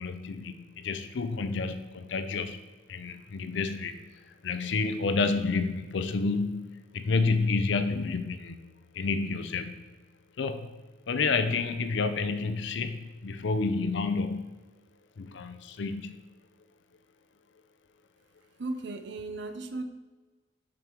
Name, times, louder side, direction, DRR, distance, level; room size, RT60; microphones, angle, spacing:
voice 1, 0.0-2.6 2.9-4.0 4.4-8.7 8.9-9.8 10.4-10.7 11.1-14.5 15.2-16.1, left 4 dB, 60° left, 9 dB, 0.5 m, -29 dB
voice 2, 18.6-19.8, right 2 dB, 60° right, 8 dB, 0.6 m, -36 dB
7.6 x 5.1 x 4.5 m, 1.3 s
head